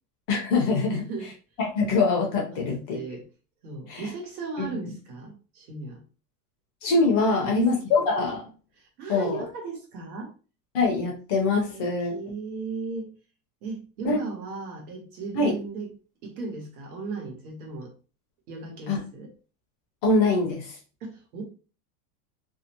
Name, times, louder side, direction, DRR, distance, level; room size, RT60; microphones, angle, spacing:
voice 1, 0.3-1.0 1.6-3.0 3.9-4.1 4.6-4.8 6.8-8.4 9.1-9.4 10.7-12.2 14.0-14.2 15.3-15.5 18.9-19.0 20.0-20.8, left 3 dB, 35° left, 0 dB, 0.6 m, -23 dB
voice 2, 0.8-1.3 2.5-3.2 3.6-6.0 7.4-7.6 8.8-10.3 11.6-13.1 13.6-15.9 16.2-17.9 18.5-19.3 21.0-21.4, right 4 dB, 65° right, 2 dB, 1.1 m, -36 dB
2.6 x 2.0 x 2.8 m, 0.35 s
supercardioid pair, 170°, 48 cm